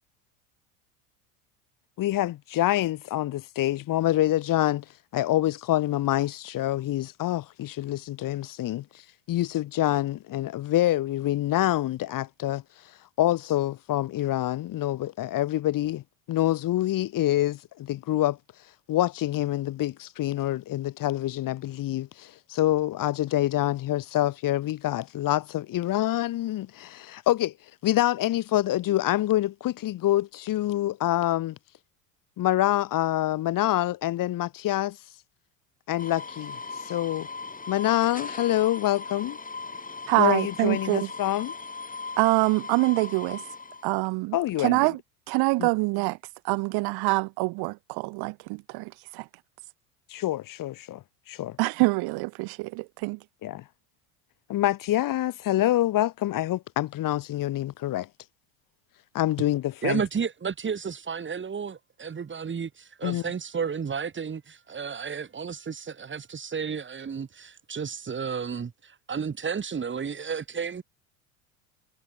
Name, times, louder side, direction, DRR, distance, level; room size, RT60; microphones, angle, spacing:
voice 1, 2.0-2.3 2.6-4.8 5.1-8.8 9.3-12.6 13.2-18.4 18.9-27.5 27.8-31.6 32.4-35.0 35.9-37.3 37.7-39.4 40.2-41.5 44.3-44.8 45.6-45.7 50.1-51.6 53.4-53.6 54.5-58.1 59.1-60.0 63.0-63.2, left 14 dB, 45° left, 2.7 m, -26 dB
sound 1, 36.0-43.9, left 4 dB, 20° left, 7.1 m, -38 dB
voice 2, 40.1-41.1 42.2-43.4 43.8-45.0 45.3-46.2 46.4-49.3 51.6-53.2, right 25 dB, 55° right, 1.6 m, -25 dB
voice 3, 59.8-70.8, right 6 dB, 25° right, 3.9 m, -32 dB
hypercardioid pair, 80°, 45 cm